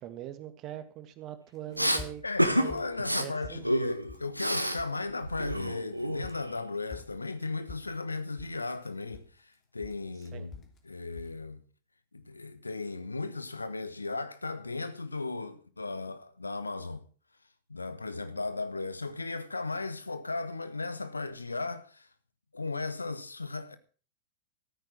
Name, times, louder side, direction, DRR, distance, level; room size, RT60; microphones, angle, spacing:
voice 1, 0.0-2.2 2.5-2.9 3.2-3.7 10.3-10.5, right 12 dB, 35° right, 1.8 m, -42 dB
sound 1, 1.6-2.4 2.7-3.7 4.1-4.5 4.8-5.0 5.3-6.6 6.9-9.5 9.8-10.8 11.1-11.4, left 5 dB, 30° left, 2.9 m, -48 dB
Respiratory sounds, 1.8-2.0 2.4-2.7 3.0-3.2 3.6-4.8 5.1-6.5, equal, 90° right, 1.2 m, -29 dB
voice 2, 2.2-11.6 12.1-17.1 17.7-22.1 22.5-23.8, left 3 dB, 80° left, 1.1 m, -36 dB
13.5 x 9.1 x 6.2 m
figure-of-eight pair, 90°, 0 cm